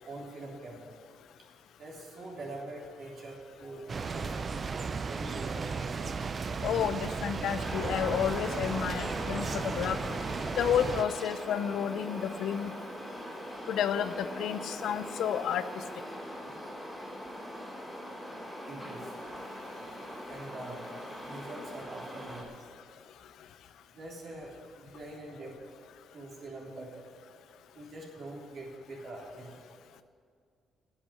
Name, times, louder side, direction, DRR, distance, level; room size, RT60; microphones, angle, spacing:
voice 1, 0.0-1.0 1.8-3.8 4.1-4.6 5.1-5.7 18.7-19.1 20.3-20.8 21.2-22.6 23.9-25.6 26.1-27.1 27.7-29.7, right 2 dB, 55° right, -2 dB, 3.6 m, -44 dB
sound 1, 3.9-11.0, right 5 dB, 40° right, 0.6 m, -35 dB
voice 2, 6.6-10.0 10.5-12.7 13.7-15.6, left 9 dB, 75° left, 12 dB, 0.6 m, -31 dB
sound 2, 7.6-22.4, equal, ahead, 3.2 m, -41 dB
9.9 x 8.9 x 9.9 m, 2.2 s
cardioid pair, 90°, 0 cm